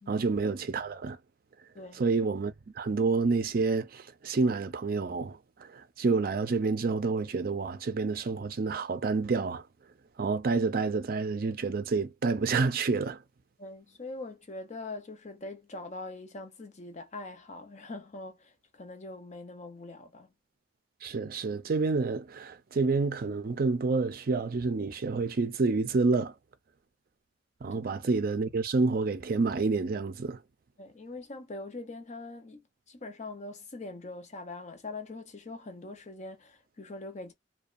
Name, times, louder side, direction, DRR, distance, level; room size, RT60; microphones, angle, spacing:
voice 1, 0.1-1.2 2.0-9.6 10.2-13.2 21.0-26.3 27.6-30.4, right 4 dB, 55° right, 0.5 m, -28 dB
voice 2, 13.6-20.3 27.7-28.0 30.8-37.3, left 2 dB, 40° left, 0.6 m, -43 dB
2.6 x 2.2 x 2.4 m
head